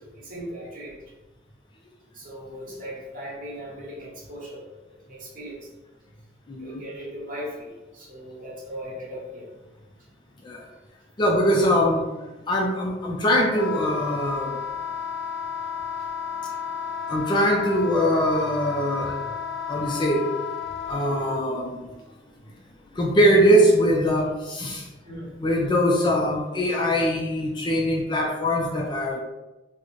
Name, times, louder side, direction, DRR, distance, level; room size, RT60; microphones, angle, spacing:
voice 1, 0.1-1.0 2.1-4.7 5.0-5.6 6.6-9.5 25.1-25.3, equal, 45° right, -5 dB, 1.1 m, -38 dB
voice 2, 6.5-6.8 10.4-10.6 11.2-12.1 12.5-14.6 17.1-19.1 19.7-20.2 20.9-21.9 22.9-24.8 25.4-29.2, equal, 25° left, 0 dB, 0.3 m, -22 dB
Wind instrument woodwind instrument, 13.5-21.4, left 7 dB, 80° left, 0.5 m, -32 dB
3.6 x 2.1 x 3.2 m, 1.1 s
head